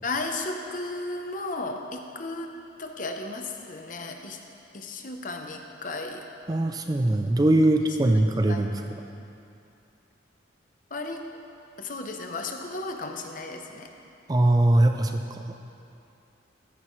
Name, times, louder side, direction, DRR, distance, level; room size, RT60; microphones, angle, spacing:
voice 1, 0.0-2.5 2.8-4.4 4.7-6.2 8.5-8.6 10.9-11.2 11.8-13.9, left 2 dB, 45° left, 4 dB, 0.8 m, -34 dB
voice 2, 6.5-8.8 14.3-15.4, right 1 dB, 20° right, 5 dB, 0.4 m, -21 dB
14.5 x 10.5 x 3.2 m, 2.7 s
head